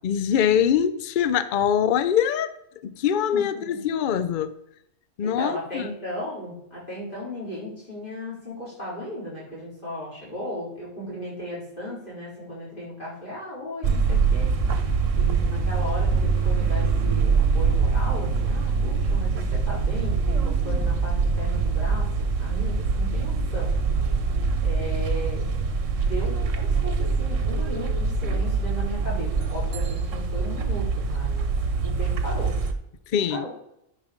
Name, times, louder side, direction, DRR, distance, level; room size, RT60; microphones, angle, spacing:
voice 1, 0.0-2.6 2.8-4.6 5.2-5.9 33.1-33.4, left 8 dB, 85° left, 0.4 m, -23 dB
voice 2, 3.3-3.8 5.2-14.5 15.2-22.1 22.4-23.7 24.6-25.4 26.0-31.5 31.8-32.5 33.3-33.5, equal, 35° left, 4.5 m, -36 dB
sound 1, 13.8-32.7, right 4 dB, 65° right, 1.2 m, -24 dB
10.5 x 5.1 x 5.1 m
omnidirectional pair, 1.5 m